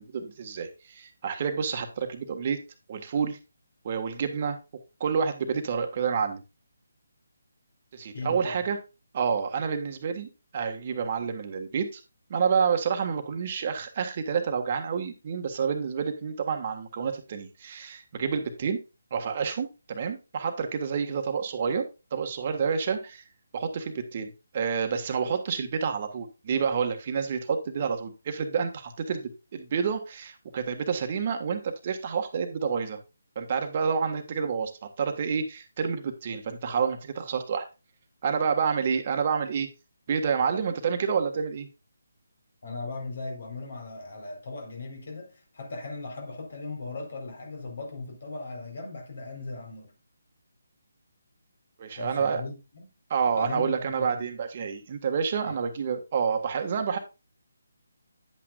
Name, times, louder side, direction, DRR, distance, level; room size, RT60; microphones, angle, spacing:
voice 1, 0.0-2.6 2.9-3.4 3.8-4.6 5.0-6.4 7.9-8.8 9.1-12.0 12.3-18.8 19.1-23.2 23.5-33.0 33.3-34.7 35.0-37.6 38.2-39.7 40.1-41.7 51.8-52.4 53.1-57.0, right 6 dB, 40° right, 1.5 m, -29 dB
voice 2, 8.1-8.7 42.6-49.9 52.0-52.9 53.4-54.3 55.4-55.6, left 3 dB, 55° left, 4.0 m, -38 dB
10.0 x 8.8 x 2.4 m
figure-of-eight pair, 150°, 0 cm